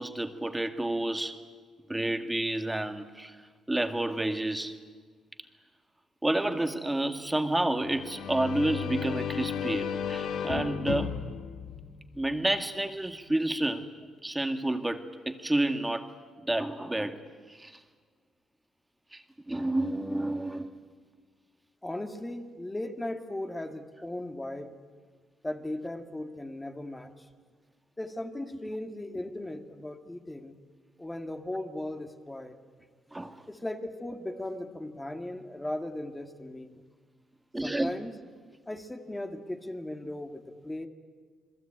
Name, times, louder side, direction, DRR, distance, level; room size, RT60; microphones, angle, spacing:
voice 1, 0.0-1.4 1.9-3.4 3.7-4.8 6.2-11.1 12.2-13.9 14.2-16.1 16.4-17.2 17.5-17.8 19.1-20.7 33.1-33.5 37.5-37.9, right 1 dB, 10° right, 7 dB, 1.9 m, -30 dB
sound 1, 7.8-12.6, left 7 dB, 70° left, 1.6 m, -34 dB
voice 2, 21.8-24.8 25.4-27.3 28.0-30.6 31.0-32.5 33.5-36.8 37.6-38.1 38.7-40.9, left 1 dB, 15° left, 5 dB, 2.1 m, -37 dB
28.0 x 21.0 x 8.9 m, 1.6 s
cardioid pair, 90°, 0 cm